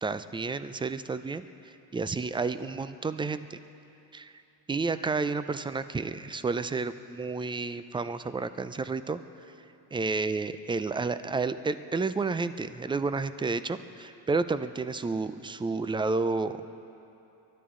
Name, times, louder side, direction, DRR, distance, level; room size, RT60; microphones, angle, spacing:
voice 1, 0.0-3.6 4.1-4.3 4.7-9.2 9.9-16.6, right 4 dB, 10° right, 12 dB, 0.3 m, -31 dB
23.5 x 12.0 x 3.8 m, 2.8 s
supercardioid pair, 85°, 47 cm